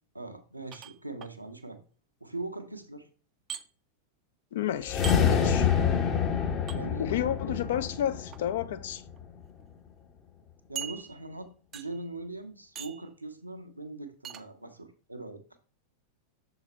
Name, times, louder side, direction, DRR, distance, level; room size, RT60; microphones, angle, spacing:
voice 1, 0.1-1.8 2.2-3.1 6.7-7.7 10.7-15.4, right 2 dB, 85° right, 0.8 m, -41 dB
sound 1, 0.7-1.3 3.5-3.6 5.0-5.2 6.7-6.8 8.1-8.4 9.2-9.3 9.6-9.7 10.8-11.4 11.7-12.1 12.8-13.1 14.2-14.4, right 8 dB, 30° right, 0.5 m, -40 dB
voice 2, 4.5-5.7 7.0-9.0, left 10 dB, 55° left, 0.5 m, -31 dB
sound 2, 4.8-9.2, left 7 dB, 30° left, 0.8 m, -27 dB
6.4 x 3.9 x 4.2 m
figure-of-eight pair, 90°, 0 cm